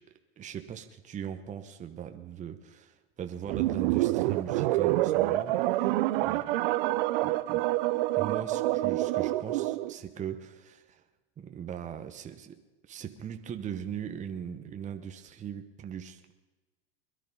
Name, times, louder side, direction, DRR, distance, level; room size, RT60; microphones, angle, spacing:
voice 1, 0.4-6.5 7.2-7.6 8.2-11.0 11.4-12.6 12.9-16.3, right 8 dB, 25° right, 7 dB, 1.1 m, -40 dB
sound 1, 3.5-9.9, right 17 dB, 60° right, 0.9 m, -27 dB
22.0 x 12.0 x 5.5 m, 1.2 s
hypercardioid pair, 110°, 30 cm